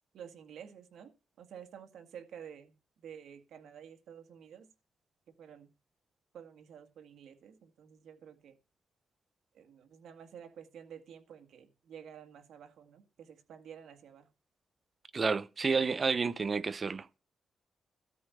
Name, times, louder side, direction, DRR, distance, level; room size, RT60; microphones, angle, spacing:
voice 1, 0.1-1.1 1.4-2.8 3.0-4.7 5.3-5.7 6.3-8.6 9.5-14.3, right 8 dB, 85° right, 1.9 m, -51 dB
voice 2, 15.1-17.2, right 4 dB, 35° right, 0.7 m, -30 dB
13.5 x 5.2 x 8.4 m
wide cardioid pair, 140°, 0 cm